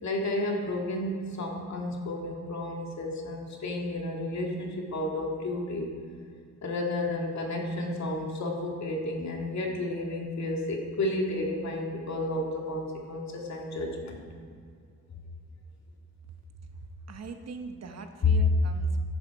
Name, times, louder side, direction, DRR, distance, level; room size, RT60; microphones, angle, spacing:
voice 1, 0.0-5.9 6.6-14.2 18.2-18.4, left 2 dB, 60° left, 0 dB, 2.2 m, -31 dB
voice 2, 17.1-19.0, right 4 dB, 55° right, 6 dB, 1.1 m, -41 dB
14.5 x 11.0 x 4.8 m, 2.1 s
wide cardioid pair, 175°, 31 cm